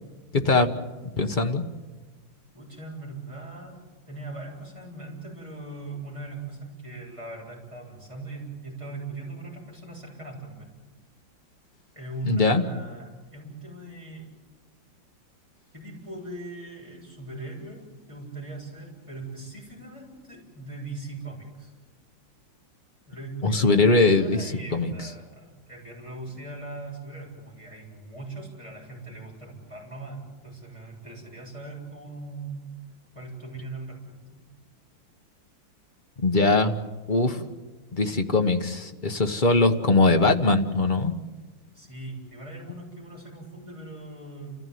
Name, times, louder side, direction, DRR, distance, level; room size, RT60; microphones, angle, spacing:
voice 1, 0.3-0.7 1.0-1.6 12.2-12.6 23.4-24.9 36.2-36.8 37.1-37.5 37.9-41.1, left 3 dB, 30° left, 5 dB, 1.2 m, -21 dB
voice 2, 2.5-10.7 11.9-14.3 15.7-21.7 23.1-32.7 33.1-34.4 41.7-44.5, right 2 dB, 15° right, -4 dB, 7.8 m, -40 dB
29.5 x 15.0 x 9.4 m, 1.2 s
omnidirectional pair, 2.1 m